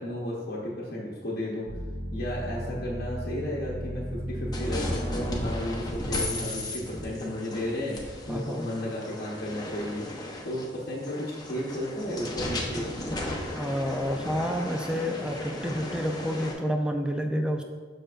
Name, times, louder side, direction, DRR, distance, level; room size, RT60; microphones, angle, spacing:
voice 1, 0.0-1.7 2.1-10.0 10.4-12.9, left 1 dB, 55° left, -6 dB, 1.0 m, -33 dB
sound 1, 1.7-7.4, equal, 30° right, 1.5 m, -36 dB
sound 2, 4.5-16.5, left 1 dB, 20° left, 0.8 m, -35 dB
voice 2, 8.3-8.7 13.6-17.6, equal, 5° right, 4 dB, 0.5 m, -29 dB
6.7 x 6.4 x 2.5 m, 1.5 s
head